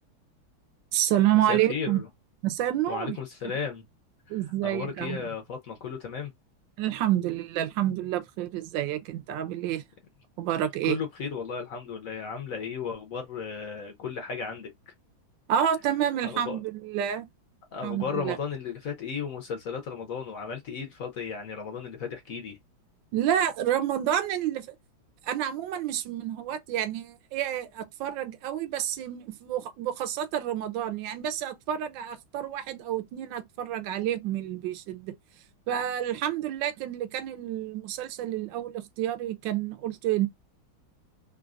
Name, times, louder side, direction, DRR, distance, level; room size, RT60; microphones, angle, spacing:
voice 1, 0.9-2.0 2.4-3.2 4.3-5.3 6.8-9.8 10.4-11.0 15.5-17.3 17.8-18.4 23.1-24.7 25.2-35.1 35.7-40.3, right 11 dB, 75° right, 1.2 m, -29 dB
voice 2, 1.5-2.0 2.9-3.9 4.3-4.4 4.6-6.3 10.8-14.9 16.2-16.6 17.7-22.6, left 6 dB, 70° left, 0.8 m, -35 dB
3.8 x 2.4 x 2.4 m
omnidirectional pair, 2.3 m